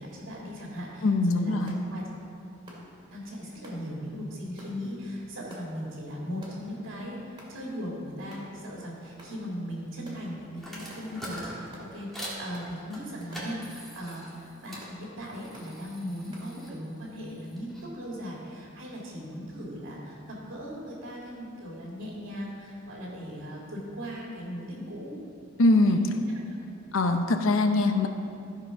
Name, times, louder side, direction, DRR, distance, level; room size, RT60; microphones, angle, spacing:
voice 1, 0.0-1.6 1.8-2.0 3.1-25.1 25.9-26.1, equal, 70° right, -4 dB, 2.1 m, -38 dB
voice 2, 1.0-1.8 25.6-26.0 26.9-28.1, left 2 dB, 75° left, 6 dB, 0.7 m, -22 dB
sound 1, 1.7-1.9 2.7-2.9 3.6-3.8 4.6-4.8 5.5-5.7 6.4-6.7 7.4-7.6 8.3-8.5 9.2-9.4 10.0-10.2 10.9-11.1 11.7-11.9 12.5-12.7 13.3-13.5 14.1-14.3 14.8-15.0 15.5-15.7 16.3-16.5, right 1 dB, 25° right, 2.2 m, -49 dB
sound 2, 10.6-12.4 12.9-14.9 15.2-17.9, equal, ahead, 1.9 m, -43 dB
14.0 x 5.0 x 5.6 m, 2.5 s
head